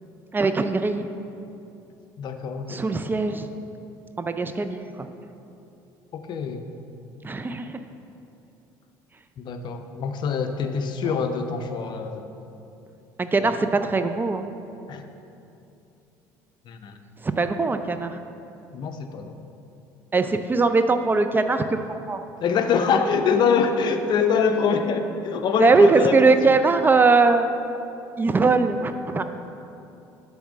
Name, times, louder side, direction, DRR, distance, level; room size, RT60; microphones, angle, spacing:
voice 1, 0.3-1.1 2.7-3.5 4.2-5.1 7.2-7.7 13.2-14.5 17.2-18.1 20.1-22.2 25.6-27.5 28.2-29.2, right 3 dB, 20° right, 9 dB, 0.4 m, -21 dB
voice 2, 2.2-2.8 6.1-6.6 9.4-12.3 13.4-13.5 14.9-15.1 16.7-17.0 18.7-19.4 22.4-26.2, left 6 dB, 55° left, 7 dB, 0.6 m, -24 dB
7.9 x 3.5 x 6.3 m, 2.8 s
supercardioid pair, 80°, 9 cm